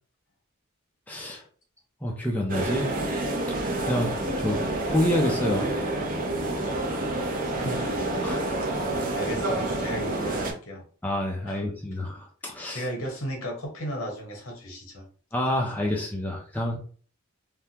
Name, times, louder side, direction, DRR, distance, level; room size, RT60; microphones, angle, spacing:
voice 1, 1.1-1.4 2.0-2.9 3.9-4.1 4.4-4.6 4.9-5.7 8.2-8.4 11.0-12.9 15.3-16.8, left 1 dB, 5° left, -1 dB, 0.4 m, -27 dB
sound 1, 2.5-10.5, right 2 dB, 40° right, 0.6 m, -28 dB
voice 2, 7.6-8.4 9.1-10.8 11.5-11.6 12.7-15.0, equal, 75° left, 1 dB, 1.1 m, -35 dB
3.4 x 2.1 x 2.8 m, 0.42 s
head